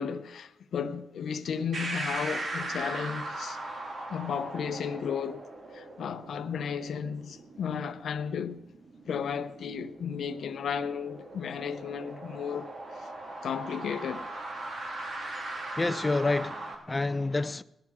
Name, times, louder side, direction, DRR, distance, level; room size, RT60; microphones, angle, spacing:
voice 1, 0.0-3.6 4.1-5.5 5.7-8.6 9.1-13.1 13.4-14.3, left 7 dB, 75° left, 0.7 m, -34 dB
sound 1, 1.7-16.7, right 2 dB, 60° right, 2.7 m, -39 dB
voice 2, 15.8-17.6, left 3 dB, 20° left, 0.5 m, -28 dB
18.0 x 11.0 x 4.9 m
cardioid pair, 105°, 0 cm